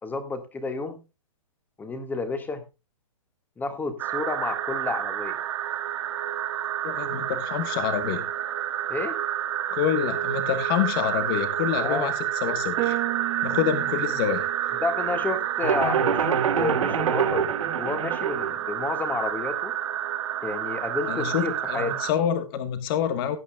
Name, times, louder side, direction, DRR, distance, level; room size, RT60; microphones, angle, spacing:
voice 1, 0.0-1.0 1.8-2.6 3.6-5.4 8.9-9.2 11.8-12.1 14.8-17.5 17.7-19.7 20.4-22.0, left 3 dB, 10° left, 8 dB, 1.7 m, -30 dB
sound 1, 4.0-22.1, right 11 dB, 55° right, 1.6 m, -29 dB
voice 2, 6.8-8.2 9.7-13.0 13.4-14.5 21.1-23.4, left 9 dB, 40° left, 10 dB, 1.4 m, -27 dB
sound 2, 12.8-19.1, right 19 dB, 30° right, 1.6 m, -37 dB
sound 3, 15.6-18.5, right 7 dB, 75° right, 2.8 m, -25 dB
17.0 x 8.7 x 2.3 m, 0.27 s
hypercardioid pair, 140°, 18 cm